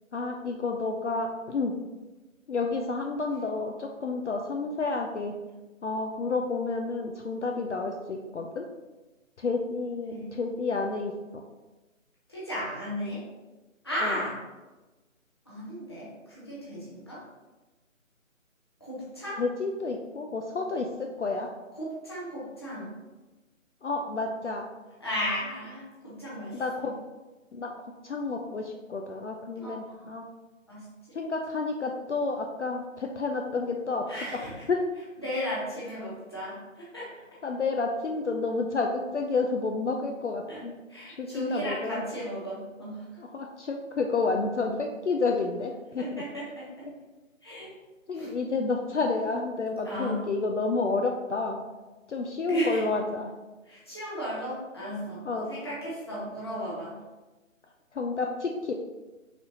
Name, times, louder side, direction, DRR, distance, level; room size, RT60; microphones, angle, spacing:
voice 1, 0.1-1.7 2.5-5.3 5.8-8.6 9.4-11.1 14.0-14.2 19.4-21.5 23.8-24.7 26.5-26.9 27.5-27.7 28.0-30.3 31.1-34.3 34.7-34.8 37.4-40.7 41.2-42.0 43.2-46.2 48.1-51.7 52.1-53.3 55.2-55.6 57.9-58.7, left 3 dB, 60° left, 2 dB, 0.5 m, -30 dB
voice 2, 12.3-13.3 13.8-14.4 15.5-17.2 18.8-19.4 21.8-22.9 25.0-26.9 29.6-30.1 30.7-30.9 34.1-34.5 35.2-37.1 40.5-40.6 40.9-43.0 46.0-46.9 47.4-47.7 48.1-48.3 49.8-50.2 52.5-52.8 53.7-57.0, equal, 20° left, -8 dB, 0.8 m, -35 dB
4.3 x 4.2 x 2.7 m, 1.1 s
figure-of-eight pair, 170°, 41 cm